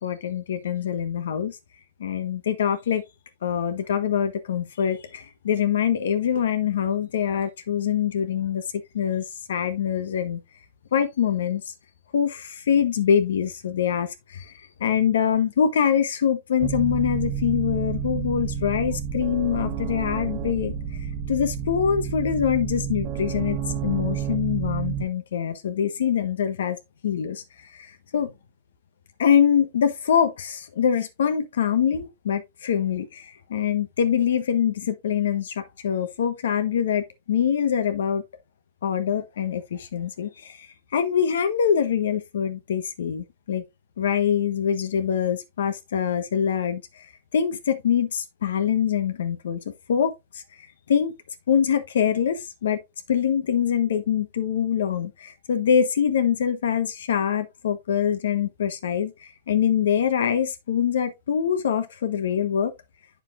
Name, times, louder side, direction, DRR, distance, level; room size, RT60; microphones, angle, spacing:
voice 1, 0.0-1.6 2.0-3.0 3.4-8.6 8.9-10.4 10.9-11.7 12.1-14.5 14.8-20.7 21.3-23.6 23.8-26.8 27.0-27.4 27.7-28.3 29.2-38.2 38.8-40.7 40.9-43.6 44.0-46.8 47.3-49.6 49.9-50.4 50.9-51.1 51.5-52.8 53.1-62.7, left 8 dB, 85° left, 1.3 m, -24 dB
sound 1, 16.6-25.1, right 7 dB, 45° right, 1.1 m, -30 dB
8.2 x 6.7 x 2.5 m
hypercardioid pair, 140°, 0 cm